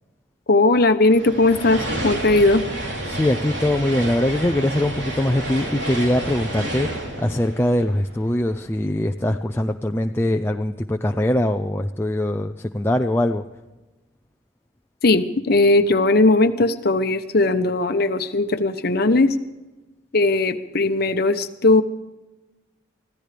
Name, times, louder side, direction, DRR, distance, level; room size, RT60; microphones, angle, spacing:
voice 1, 0.5-2.7 15.0-19.3 20.1-21.8, left 2 dB, 50° left, 9 dB, 0.9 m, -18 dB
sound 1, 1.1-8.5, right 1 dB, 60° right, 3.6 m, -30 dB
voice 2, 3.1-13.4, left 1 dB, 10° left, 5 dB, 0.4 m, -22 dB
24.5 x 15.5 x 3.4 m, 1.1 s
head